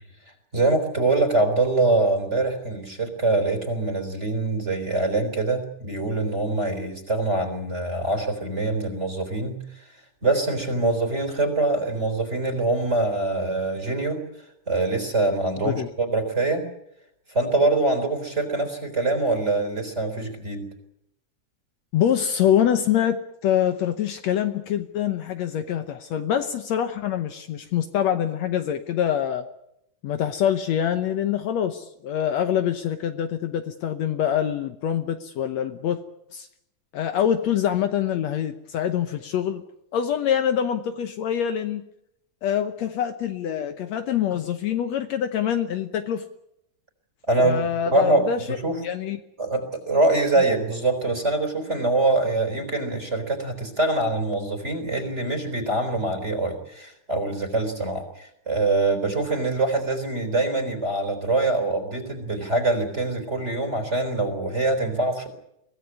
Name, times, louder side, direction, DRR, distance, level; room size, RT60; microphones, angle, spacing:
voice 1, 0.5-9.8 10.2-16.6 17.3-20.7 47.3-48.8 49.4-65.3, right 2 dB, 20° right, 8 dB, 4.0 m, -24 dB
voice 2, 21.9-29.5 30.0-36.0 36.3-36.5 36.9-39.6 39.9-41.8 42.4-46.2 47.4-48.6 48.8-49.2, left 9 dB, 70° left, 8 dB, 2.1 m, -25 dB
23.5 x 17.0 x 9.6 m, 0.81 s
omnidirectional pair, 3.5 m